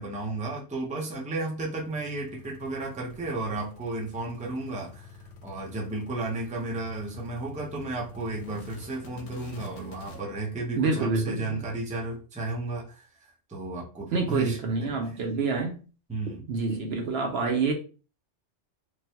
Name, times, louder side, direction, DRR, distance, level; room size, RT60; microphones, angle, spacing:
voice 1, 0.0-5.1 5.4-14.9 16.1-16.4, right 2 dB, 10° right, 0.5 m, -33 dB
sound 1, 1.4-10.2, left 4 dB, 80° left, 0.9 m, -48 dB
voice 2, 9.6-9.9 10.8-11.6 14.1-15.8 16.3-17.7, right 4 dB, 65° right, 0.8 m, -28 dB
3.1 x 2.2 x 2.8 m
omnidirectional pair, 1.2 m